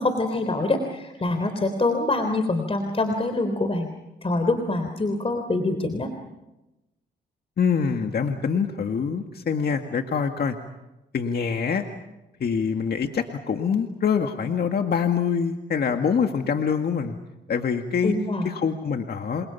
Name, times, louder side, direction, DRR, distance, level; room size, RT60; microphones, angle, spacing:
voice 1, 0.0-3.9 4.2-6.1 18.0-18.5, left 2 dB, 30° left, 6 dB, 3.6 m, -25 dB
voice 2, 7.6-10.6 11.1-11.8 12.4-17.2 17.5-18.2 18.4-19.5, left 6 dB, 55° left, 5 dB, 2.0 m, -25 dB
29.5 x 27.5 x 5.8 m, 0.97 s
cardioid pair, 65°, 19 cm